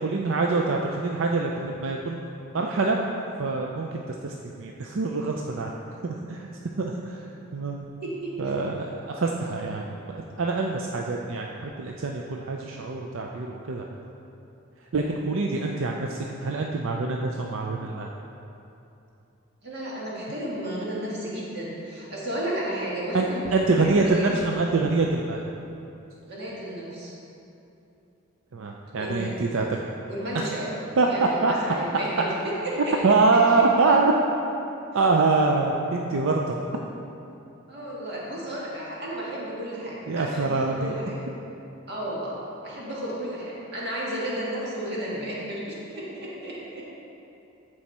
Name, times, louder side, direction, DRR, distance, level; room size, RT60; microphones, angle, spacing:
voice 1, 0.0-2.2 2.5-3.0 3.4-5.7 6.0-6.5 6.8-7.3 7.5-7.8 8.4-13.8 14.9-18.1 23.1-23.3 23.5-25.4 28.5-29.8 31.0-31.5 32.8-34.1 34.9-36.6 40.1-40.9, right 3 dB, 70° right, 0 dB, 0.5 m, -25 dB
voice 2, 8.0-8.3 19.6-24.4 26.3-27.1 29.0-29.4 30.1-30.7 31.1-32.9 37.7-41.2 41.9-42.4 42.6-46.8, right 1 dB, 50° right, -6 dB, 1.9 m, -33 dB
14.0 x 4.7 x 4.3 m, 2.8 s
head